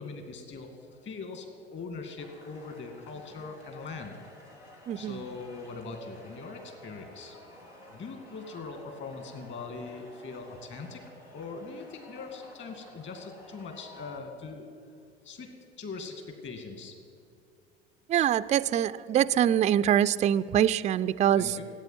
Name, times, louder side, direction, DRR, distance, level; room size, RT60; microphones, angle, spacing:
voice 1, 0.0-4.1 5.0-7.5 7.9-11.0 11.3-14.7 15.2-15.5 15.8-16.9 21.4-21.6, left 4 dB, 35° left, 5 dB, 2.3 m, -41 dB
sound 1, 2.2-14.2, left 1 dB, 85° left, 2.6 m, -52 dB
voice 2, 4.9-5.2 18.1-21.6, right 10 dB, 25° right, 14 dB, 0.4 m, -24 dB
16.0 x 8.7 x 9.2 m, 2.3 s
figure-of-eight pair, 70°, 32 cm